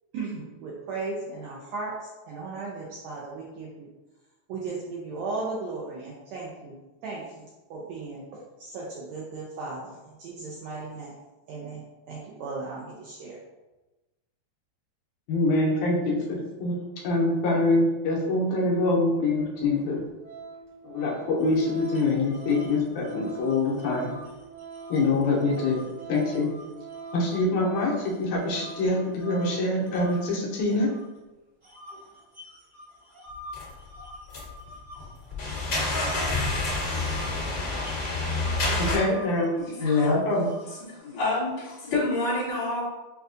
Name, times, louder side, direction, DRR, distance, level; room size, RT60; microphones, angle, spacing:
voice 1, 0.1-3.9 4.5-11.2 11.5-13.4, right 3 dB, 75° right, -4 dB, 1.7 m, -36 dB
voice 2, 15.3-16.8 17.0-20.0 20.8-24.1 24.9-26.5 27.1-30.9 38.8-39.5 40.3-40.5, left 2 dB, 80° left, -3 dB, 2.1 m, -25 dB
Organ, 19.2-19.3 19.8-19.9 20.2-29.8 30.1-30.3, right 4 dB, 50° right, 1.4 m, -43 dB
sound 1, 21.4-27.4 27.8-31.2 31.6-41.0, left 1 dB, 30° right, 0.8 m, -48 dB
sound 2, 33.5-33.7 34.3-34.7 35.0-39.0, left 2 dB, 40° left, 1.6 m, -28 dB
voice 3, 39.6-40.2 40.9-42.8, left 3 dB, 60° left, -7 dB, 2.5 m, -26 dB
6.7 x 2.3 x 2.5 m, 1.1 s
omnidirectional pair, 3.5 m